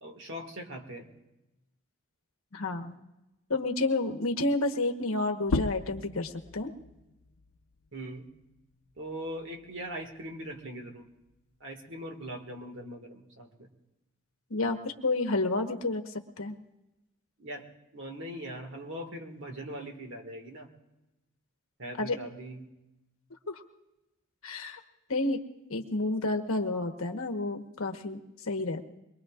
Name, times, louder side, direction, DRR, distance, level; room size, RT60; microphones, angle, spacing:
voice 1, 0.0-1.1 7.9-8.3 9.0-11.1 11.6-13.7 17.4-17.7 17.9-20.7 21.8-22.7, right 1 dB, 55° right, 4 dB, 1.9 m, -41 dB
voice 2, 2.5-3.0 3.5-6.7 14.5-16.5 22.0-22.2 23.5-23.6 24.4-24.8 25.1-25.4 25.7-28.8, left 2 dB, 65° left, 5 dB, 1.2 m, -30 dB
sound 1, 5.4-10.6 11.0-12.8, left 3 dB, 80° left, 0.6 m, -38 dB
23.0 x 22.5 x 2.5 m, 0.97 s
head